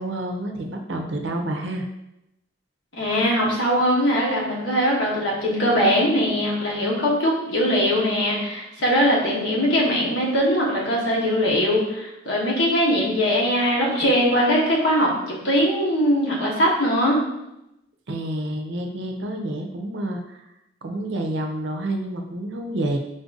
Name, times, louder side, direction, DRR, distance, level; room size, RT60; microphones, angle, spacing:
voice 1, 0.0-1.9 18.1-20.5 20.8-23.0, right 1 dB, 65° right, 4 dB, 0.5 m, -29 dB
voice 2, 2.9-17.2, equal, 75° left, -4 dB, 1.2 m, -21 dB
3.8 x 2.5 x 3.9 m, 0.87 s
head